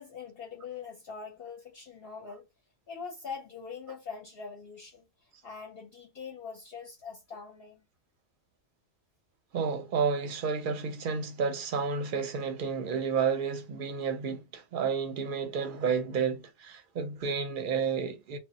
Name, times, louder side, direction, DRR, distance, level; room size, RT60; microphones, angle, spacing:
voice 1, 0.0-2.5 2.9-7.8, left 5 dB, 60° left, 0.7 m, -43 dB
voice 2, 9.5-18.4, right 6 dB, 55° right, 0.6 m, -31 dB
2.1 x 2.0 x 3.7 m
omnidirectional pair, 1.2 m